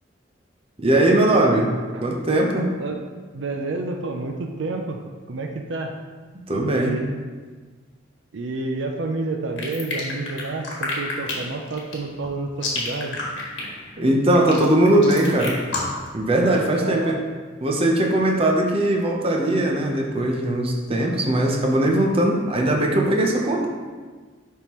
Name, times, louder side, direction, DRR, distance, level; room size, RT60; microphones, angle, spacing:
voice 1, 0.8-1.7 2.0-2.7 6.5-7.0 14.0-15.6 16.1-17.2 17.6-23.7, right 1 dB, 30° right, 0 dB, 0.7 m, -20 dB
voice 2, 3.3-5.0 5.3-6.0 6.7-7.1 8.3-13.2 16.7-17.2, right 3 dB, 70° right, 3 dB, 0.5 m, -29 dB
sound 1, 9.6-16.1, left 3 dB, 65° left, 1.6 m, -29 dB
10.5 x 3.7 x 3.0 m, 1.4 s
head